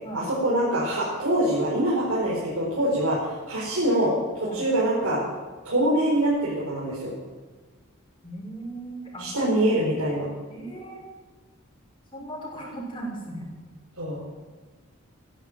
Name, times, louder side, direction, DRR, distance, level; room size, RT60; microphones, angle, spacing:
voice 1, 0.1-4.1 4.5-5.2 5.6-7.1 9.2-10.3 14.0-14.2, right 1 dB, 85° right, -6 dB, 4.6 m, -24 dB
voice 2, 8.2-9.5 10.5-11.0 12.1-13.5, right 1 dB, 25° left, -3 dB, 5.9 m, -37 dB
16.0 x 11.5 x 7.5 m, 1.4 s
head